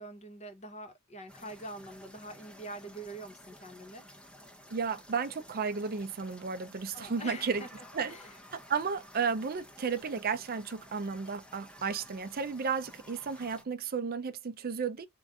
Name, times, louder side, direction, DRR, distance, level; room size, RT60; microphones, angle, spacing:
voice 1, 0.0-4.0 6.9-8.4, right 1 dB, 30° left, 1.2 m, -45 dB
sound 1, 1.3-13.6, equal, 5° left, 0.8 m, -53 dB
voice 2, 4.7-7.6 7.9-8.2 8.5-15.1, right 5 dB, 45° right, 0.5 m, -33 dB
3.7 x 2.5 x 4.7 m
head